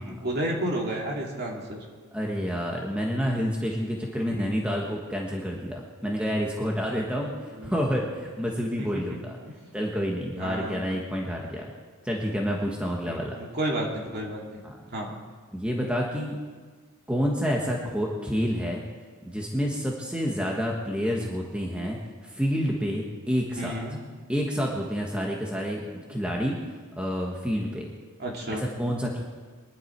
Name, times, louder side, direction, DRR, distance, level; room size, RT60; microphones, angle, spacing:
voice 1, 0.0-1.9 4.3-4.6 7.5-7.8 8.8-8.9 10.4-10.9 13.0-14.6 14.9-15.2 23.6-24.0 28.2-28.6, right 1 dB, 45° right, -2 dB, 2.8 m, -31 dB
voice 2, 2.1-9.4 9.7-11.7 12.0-13.4 14.6-14.7 15.5-16.4 17.1-18.8 19.2-22.0 22.2-23.7 24.3-26.6 27.0-27.9 28.5-29.2, equal, 5° right, -1 dB, 1.5 m, -28 dB
23.5 x 11.0 x 4.7 m, 1.5 s
head